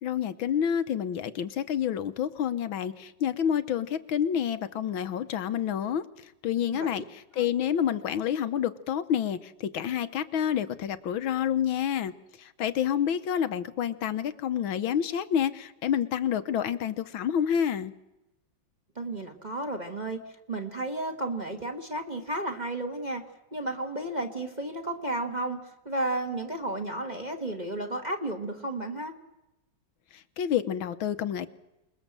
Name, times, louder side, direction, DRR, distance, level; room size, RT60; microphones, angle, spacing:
voice 1, 0.0-6.0 6.4-12.1 12.4-17.9 30.4-31.5, left 9 dB, 80° left, 12 dB, 1.9 m, -28 dB
voice 2, 6.7-7.0 7.4-7.5 19.0-20.2 20.5-23.2 23.5-25.6 25.9-29.1, right 1 dB, 20° right, 4 dB, 2.0 m, -33 dB
28.0 x 20.5 x 7.6 m, 0.95 s
omnidirectional pair, 2.2 m